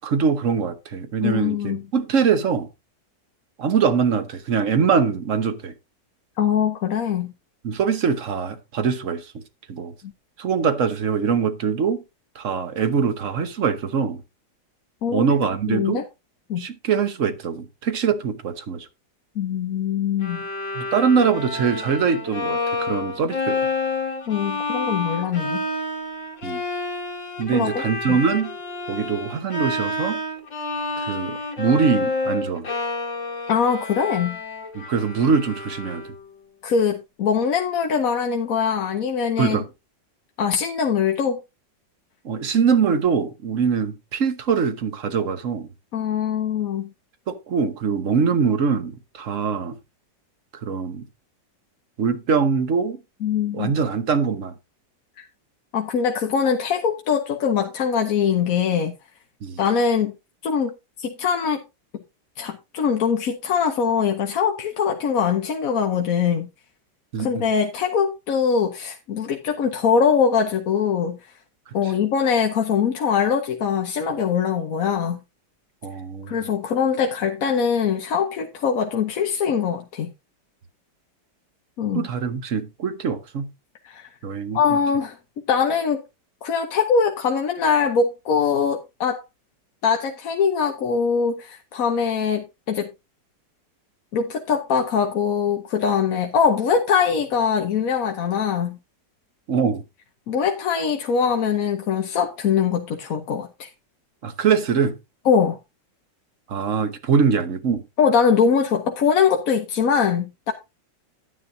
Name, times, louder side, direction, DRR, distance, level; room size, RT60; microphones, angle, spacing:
voice 1, 0.0-2.7 3.6-5.7 7.6-9.3 9.7-9.9 10.4-12.0 12.3-14.2 15.1-16.0 16.6-18.9 20.7-23.6 26.4-26.6 27.4-28.6 28.9-30.2 31.0-32.7 34.7-36.0 39.4-39.7 42.2-45.7 47.3-49.8 50.6-51.0 52.0-53.0 53.5-54.5 59.4-59.6 67.1-67.4 71.8-71.9 75.8-76.4 81.9-83.5 84.2-84.6 99.5-99.8 104.2-104.9 106.5-107.8, right 6 dB, 50° right, 1.3 m, -23 dB
voice 2, 1.2-1.8 6.4-7.3 15.0-15.2 15.7-16.0 16.5-16.6 19.4-20.4 24.3-25.6 27.5-28.2 33.5-34.4 36.6-39.6 40.4-41.4 45.9-46.9 53.2-53.7 55.2-55.3 55.7-58.9 59.6-60.1 60.4-60.7 61.0-61.6 62.4-66.5 67.2-71.3 71.7-75.2 76.3-80.1 81.8-82.1 83.8-84.1 84.5-85.2 85.5-86.0 86.4-89.2 89.8-92.9 94.1-98.8 100.3-103.7 105.3-105.6 108.0-110.5, left 6 dB, 55° left, 1.2 m, -22 dB
Bowed string instrument, 20.2-36.3, left 3 dB, 80° left, 2.7 m, -29 dB
11.0 x 9.9 x 2.7 m
omnidirectional pair, 2.0 m